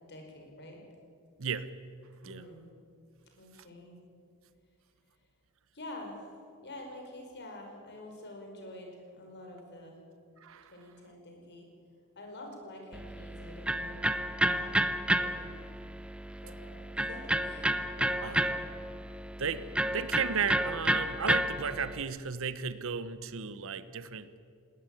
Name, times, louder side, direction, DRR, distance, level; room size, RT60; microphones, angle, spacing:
voice 1, 0.1-0.8 2.3-2.7 3.4-4.0 5.7-6.3 6.6-10.0 10.7-11.7 12.2-14.8 15.2-15.5 16.4-16.8 17.1-18.6, left 1 dB, 50° left, 2 dB, 5.2 m, -47 dB
voice 2, 1.4-1.7 2.2-2.4 10.4-10.7 18.2-18.4 19.4-24.3, right 6 dB, 65° right, 14 dB, 1.0 m, -34 dB
Electric guitar, 12.9-22.0, right 1 dB, 5° right, 0.7 m, -31 dB
19.5 x 18.5 x 9.1 m, 2.4 s
head